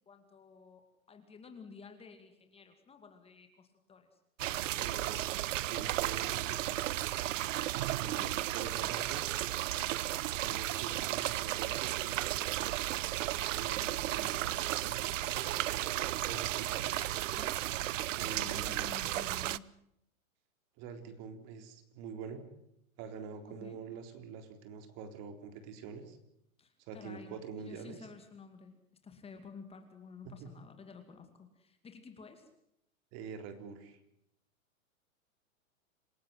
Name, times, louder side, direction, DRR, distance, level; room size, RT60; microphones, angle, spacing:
voice 1, 0.1-4.2 6.3-6.6 8.8-9.3 17.3-17.6 18.1-19.7 23.5-23.8 26.6-28.8 29.0-32.5, left 5 dB, 15° left, 6 dB, 2.4 m, -52 dB
sound 1, 4.4-19.6, right 14 dB, 65° right, 0.9 m, -34 dB
voice 2, 4.8-6.8 8.0-9.3 10.4-12.3 13.6-16.9 18.2-18.9 20.8-22.4 23.0-26.2 26.8-28.0 30.2-30.5 33.1-34.0, right 6 dB, 35° right, 8 dB, 3.8 m, -46 dB
27.5 x 16.5 x 7.9 m, 0.75 s
hypercardioid pair, 145°, 42 cm